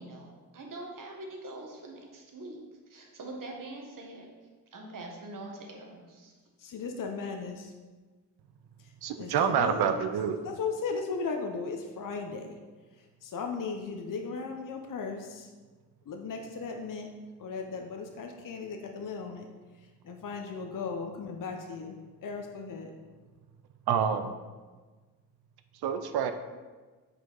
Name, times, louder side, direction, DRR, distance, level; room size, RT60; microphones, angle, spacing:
voice 1, 0.0-2.6 2.9-4.3 4.7-6.3, right 2 dB, 55° right, 1 dB, 1.6 m, -43 dB
voice 2, 6.6-7.7 9.2-10.1 10.4-12.6 13.2-15.5 16.1-17.1 17.4-19.5 20.0-22.9, left 4 dB, 55° left, 3 dB, 0.8 m, -36 dB
voice 3, 9.0-10.5 23.9-24.4 25.7-26.3, right 7 dB, 70° right, 8 dB, 0.6 m, -27 dB
6.5 x 4.9 x 4.0 m, 1.3 s
supercardioid pair, 50°, 40 cm